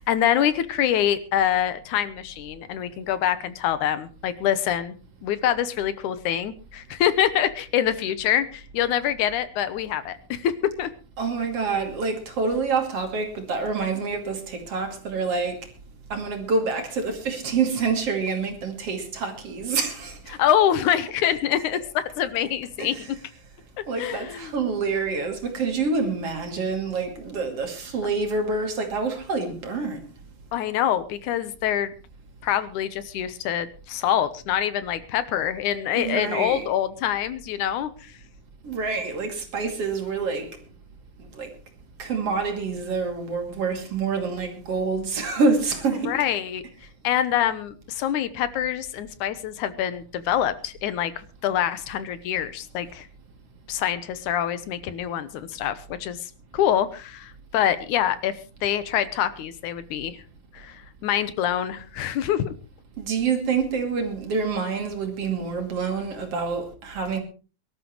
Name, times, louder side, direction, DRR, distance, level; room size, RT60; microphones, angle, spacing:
voice 1, 0.0-5.0 5.2-10.9 20.3-22.9 24.0-24.5 30.5-31.9 32.4-38.1 46.1-46.6 47.0-53.1 53.7-58.4 58.6-60.2 60.5-62.5, left 10 dB, 80° left, 2.4 m, -25 dB
voice 2, 11.2-15.7 16.1-20.4 22.8-23.1 23.9-30.1 35.9-36.7 38.6-40.6 41.3-41.5 42.0-46.3 63.0-67.2, right 4 dB, 50° right, 3.3 m, -27 dB
23.5 x 12.5 x 3.1 m
omnidirectional pair, 3.5 m